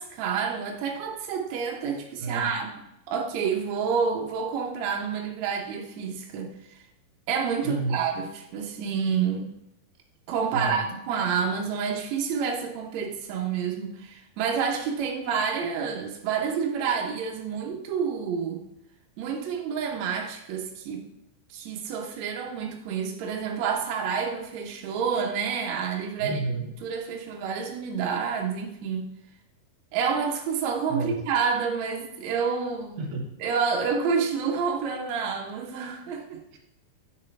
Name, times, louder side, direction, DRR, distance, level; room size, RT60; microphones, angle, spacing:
voice 1, 0.0-6.8 7.3-9.5 10.3-18.6 19.2-21.1 21.5-26.4 26.8-29.0 29.9-33.0 33.4-36.4, right 6 dB, 85° right, 1 dB, 1.5 m, -29 dB
voice 2, 2.2-2.6 7.6-8.0 10.5-10.9 26.2-26.7 30.9-31.2 33.0-33.4 36.5-36.6, right 3 dB, 60° right, 0 dB, 2.5 m, -31 dB
9.3 x 6.5 x 3.3 m, 0.85 s
omnidirectional pair, 4.5 m